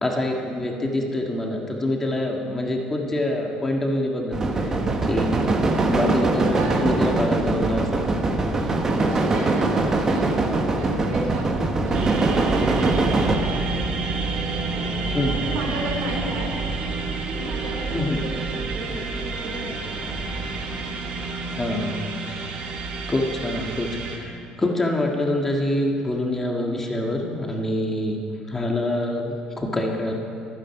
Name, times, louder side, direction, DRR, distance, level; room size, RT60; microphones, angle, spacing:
voice 1, 0.0-4.8 5.0-5.4 5.8-7.9 8.5-8.9 15.1-15.4 17.9-18.2 21.5-22.1 22.4-22.6 23.1-28.2 28.5-30.1, left 1 dB, 15° left, 0 dB, 1.7 m, -26 dB
sound 1, 4.3-13.4, right 2 dB, 25° right, 1.3 m, -22 dB
voice 2, 6.3-7.0 8.7-14.0 14.6-16.7 17.2-20.2, right 1 dB, 90° right, -1 dB, 4.8 m, -35 dB
sound 2, 11.9-24.2, right 3 dB, 50° right, 2.2 m, -29 dB
25.0 x 9.2 x 5.9 m, 2.4 s
cardioid pair, 150°, 2 cm